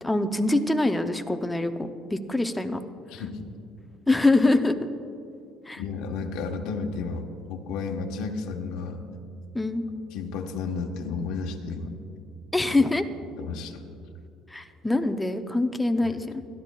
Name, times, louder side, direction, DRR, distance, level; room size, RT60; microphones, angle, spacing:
voice 1, 0.0-2.8 4.1-4.9 5.7-5.8 9.5-9.8 12.5-13.0 14.5-16.4, left 2 dB, 5° left, 7 dB, 0.5 m, -24 dB
voice 2, 3.1-3.5 5.8-9.0 10.1-11.9 13.4-13.8, left 4 dB, 75° left, 2 dB, 1.0 m, -32 dB
24.5 x 11.0 x 2.2 m, 2.5 s
cardioid pair, 165°, 0 cm